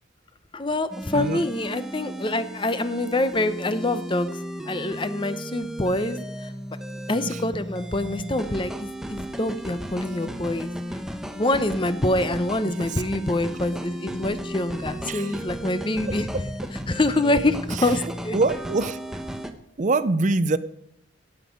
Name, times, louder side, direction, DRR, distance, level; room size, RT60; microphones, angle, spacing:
voice 1, 0.5-4.4 4.7-6.5 7.1-10.7 11.4-16.3 16.9-18.4, left 2 dB, 25° left, 12 dB, 0.8 m, -25 dB
sound 1, 0.9-19.5, equal, 5° right, 0.8 m, -35 dB
voice 2, 12.6-13.0 15.0-15.5 16.1-16.4 17.7-17.9 18.3-19.0 19.8-20.6, right 3 dB, 40° right, 15 dB, 0.5 m, -25 dB
17.0 x 8.3 x 5.2 m, 0.77 s
head